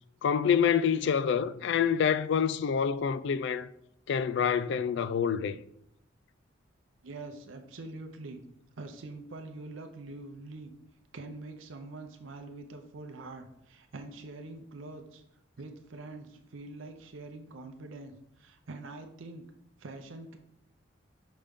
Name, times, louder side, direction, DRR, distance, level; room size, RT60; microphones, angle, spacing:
voice 1, 0.2-3.7 4.1-5.6, left 7 dB, 65° left, 0.3 m, -27 dB
voice 2, 7.0-8.4 8.8-10.7 11.1-15.2 15.6-19.5 19.8-20.4, right 2 dB, 85° right, 0.7 m, -44 dB
5.7 x 5.1 x 3.5 m
head